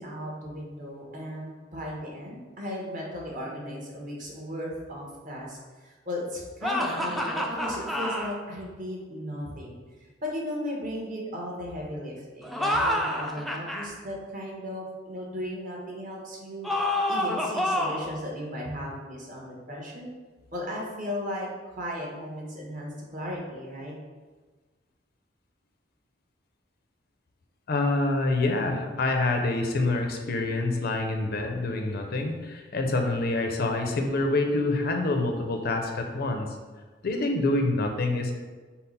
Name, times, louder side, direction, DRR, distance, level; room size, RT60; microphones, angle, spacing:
voice 1, 0.0-9.8 10.2-16.7 17.1-20.1 20.5-21.5 21.8-23.9, equal, 45° right, -3 dB, 1.0 m, -36 dB
sound 1, 6.6-8.3 12.4-13.9 16.6-18.1, left 1 dB, ahead, 0.3 m, -28 dB
voice 2, 27.7-36.5 37.0-38.3, left 2 dB, 55° left, 4 dB, 0.5 m, -26 dB
5.6 x 2.0 x 4.0 m, 1.3 s
head